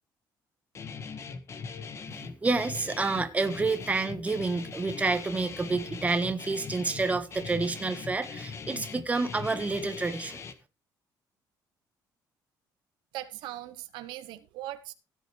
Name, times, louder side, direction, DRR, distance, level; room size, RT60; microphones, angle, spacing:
Guitar, 0.7-10.5, left 5 dB, 35° left, 1.7 m, -41 dB
voice 1, 2.1-10.4, right 3 dB, 20° right, 1.5 m, -29 dB
voice 2, 13.1-14.9, right 14 dB, 90° right, 1.2 m, -40 dB
16.0 x 8.2 x 3.4 m
cardioid pair, 125°, 8 cm